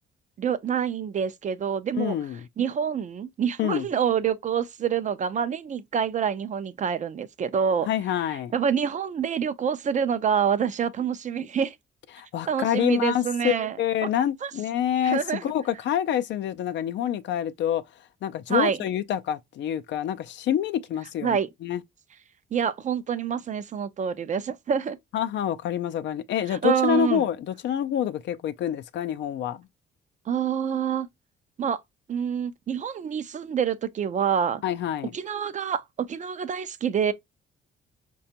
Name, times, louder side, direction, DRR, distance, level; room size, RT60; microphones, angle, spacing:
voice 1, 0.4-2.2 2.6-7.9 8.5-11.8 12.5-13.8 14.0-14.5 15.0-15.4 18.5-18.8 21.2-21.5 22.5-25.0 26.5-27.3 30.3-31.1 31.6-31.8 32.1-34.6 35.1-37.1, right 7 dB, 40° right, 0.4 m, -27 dB
voice 2, 2.0-2.5 3.6-3.8 7.8-8.5 12.1-17.8 18.2-21.8 25.1-29.6 34.6-35.1, left 10 dB, 65° left, 0.4 m, -27 dB
4.9 x 2.3 x 2.7 m
cardioid pair, 90°, 20 cm